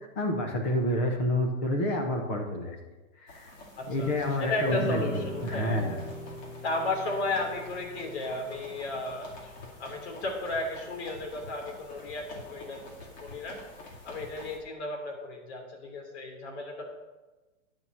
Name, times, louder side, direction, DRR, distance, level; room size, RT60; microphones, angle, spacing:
voice 1, 0.2-2.8 3.2-3.5 3.8-5.0 5.4-5.9, left 1 dB, 10° left, 2 dB, 0.4 m, -28 dB
sound 1, 3.3-14.6, left 1 dB, 30° left, 2.2 m, -49 dB
voice 2, 3.8-4.1 4.4-6.0 6.6-9.5 9.8-12.9 13.2-13.6 14.0-16.8, left 2 dB, 50° left, 1 dB, 3.0 m, -34 dB
sound 2, 4.7-10.9, right 2 dB, 25° right, 3.2 m, -41 dB
sound 3, 9.3-9.7 10.2-10.6 11.1-11.6 12.1-12.5 13.0-13.4 13.9-14.3, left 2 dB, 80° left, 1.7 m, -49 dB
10.0 x 6.8 x 6.1 m, 1.1 s
hypercardioid pair, 160°, 41 cm